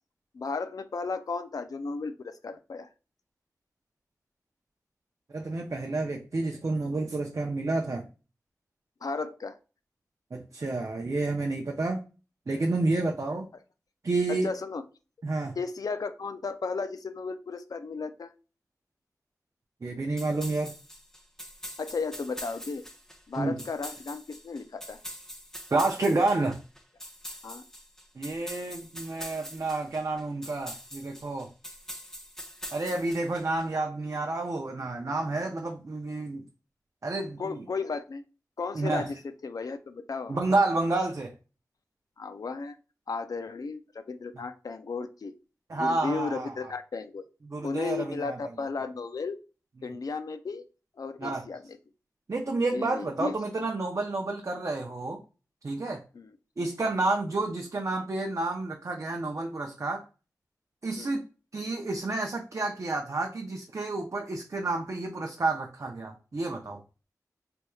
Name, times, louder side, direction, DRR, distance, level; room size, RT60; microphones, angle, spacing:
voice 1, 0.3-2.9 9.0-9.6 14.3-14.8 15.6-18.3 21.8-22.8 23.3-25.0 27.4-27.6 37.4-38.2 38.6-40.4 42.2-42.8 43.1-45.3 45.7-47.2 47.6-49.4 49.8-50.6 51.0-51.6 52.7-53.4 56.1-56.3 61.0-61.2, left 4 dB, 70° left, 10 dB, 0.4 m, -34 dB
voice 2, 5.3-8.1 10.3-12.0 12.5-13.5 14.0-14.5 15.2-15.6 19.8-20.7 23.4-23.6 25.7-26.6 28.2-31.5 32.7-36.4 37.0-37.6 38.7-39.1 40.3-41.3 45.7-46.7 47.5-48.4 49.8-50.0 51.2-51.4 52.3-55.2 55.6-56.0 56.6-60.0 60.8-61.2 61.5-66.8, right 2 dB, 55° right, 2 dB, 0.5 m, -30 dB
sound 1, 20.2-33.7, equal, 5° left, 0.6 m, -44 dB
3.4 x 3.0 x 2.2 m, 0.34 s
cardioid pair, 50°, 6 cm